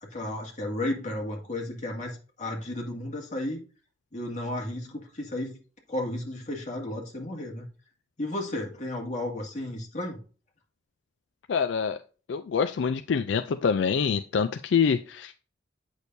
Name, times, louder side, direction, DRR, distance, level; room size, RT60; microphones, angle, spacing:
voice 1, 0.0-3.6 4.1-5.6 5.9-7.7 8.2-10.2, left 1 dB, 40° left, 2.1 m, -33 dB
voice 2, 11.5-12.0 12.3-15.3, left 6 dB, 70° left, 0.4 m, -25 dB
8.3 x 6.3 x 2.6 m
head